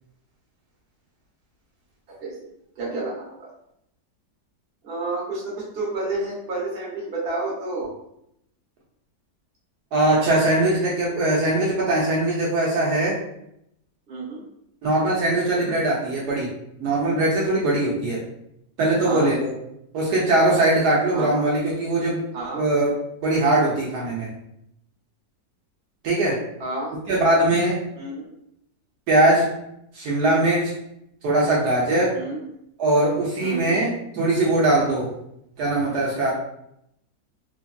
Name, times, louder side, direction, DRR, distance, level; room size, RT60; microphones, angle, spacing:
voice 1, 2.1-2.4 2.8-3.5 4.8-7.9 14.1-14.4 19.0-19.3 21.1-21.5 22.3-22.6 26.6-26.9 27.9-28.3 32.1-32.4 33.4-33.8, right 2 dB, 40° right, -5 dB, 1.0 m, -30 dB
voice 2, 9.9-13.2 14.8-16.5 16.8-18.2 18.8-19.5 19.9-22.2 22.6-22.9 23.2-24.3 26.0-26.4 27.1-27.8 29.1-29.5 29.9-30.7 31.2-32.2 32.8-35.1 35.6-36.3, right 2 dB, 75° right, -4 dB, 1.1 m, -21 dB
2.9 x 2.5 x 2.3 m, 0.77 s
omnidirectional pair, 1.8 m